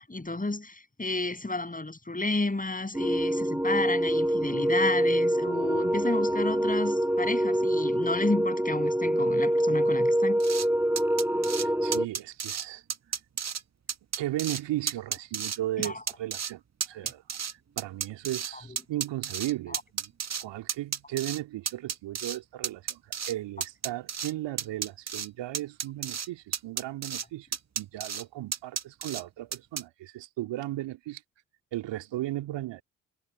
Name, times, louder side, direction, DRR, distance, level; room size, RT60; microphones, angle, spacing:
voice 1, 0.0-10.4 15.8-15.9 19.7-19.8, left 2 dB, 15° left, 7.1 m, -31 dB
sound 1, 2.9-12.1, right 1 dB, 5° right, 3.8 m, -25 dB
sound 2, 10.4-10.7 11.0-11.7 11.9-12.6 12.9-13.6 13.9-14.6 14.9-15.6 15.8-16.5 16.8-18.5 18.8-20.4 20.7-21.4 21.7-22.4 22.6-23.3 23.6-24.3 24.6-25.3 25.5-26.3 26.5-27.2 27.5-28.2 28.5-29.2 29.5-29.8, right 7 dB, 30° right, 1.5 m, -32 dB
voice 2, 11.6-12.8 14.2-20.1 20.4-27.5 27.8-31.2 31.7-32.8, right 15 dB, 60° right, 2.3 m, -36 dB
figure-of-eight pair, 40°, 50 cm